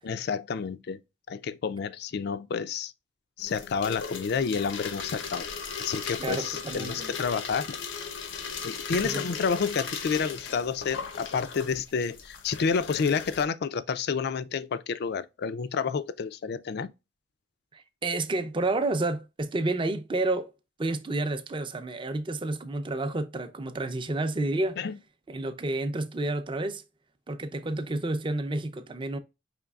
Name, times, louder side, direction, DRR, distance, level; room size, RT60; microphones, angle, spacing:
voice 1, 0.0-1.0 1.3-2.9 3.4-5.5 5.8-7.6 8.6-16.9 24.8-24.9, left 5 dB, 60° left, 0.4 m, -29 dB
sound 1, 3.4-13.4, left 5 dB, 85° left, 0.7 m, -37 dB
voice 2, 6.2-7.1 9.0-9.2 17.7-20.5 20.8-24.8 25.3-26.8 27.3-29.2, right 2 dB, 25° right, 0.5 m, -30 dB
5.1 x 3.1 x 2.3 m
head